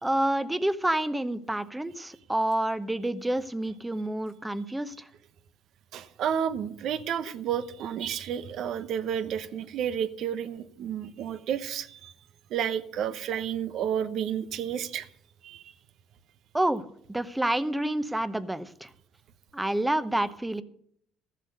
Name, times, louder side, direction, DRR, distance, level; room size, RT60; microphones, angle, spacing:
voice 1, 0.0-4.9 16.5-16.8 17.1-18.9 19.5-20.6, right 1 dB, 10° right, 13 dB, 0.9 m, -28 dB
voice 2, 5.9-12.1 12.5-15.1 15.4-15.7, right 9 dB, 65° right, 12 dB, 0.9 m, -31 dB
14.0 x 7.5 x 6.6 m, 0.66 s
cardioid pair, 95°, 0 cm